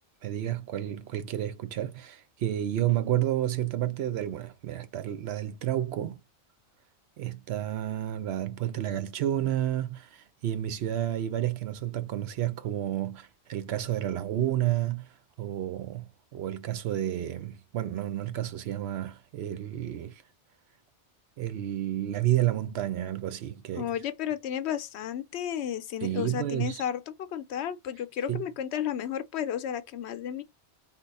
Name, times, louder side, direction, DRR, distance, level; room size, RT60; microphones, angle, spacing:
voice 1, 0.2-6.2 7.2-20.2 21.4-23.9 26.0-26.8 28.3-28.4, right 12 dB, 70° right, 0.8 m, -30 dB
voice 2, 23.7-30.4, left 9 dB, 75° left, 0.8 m, -33 dB
3.6 x 2.9 x 3.9 m
omnidirectional pair, 1.2 m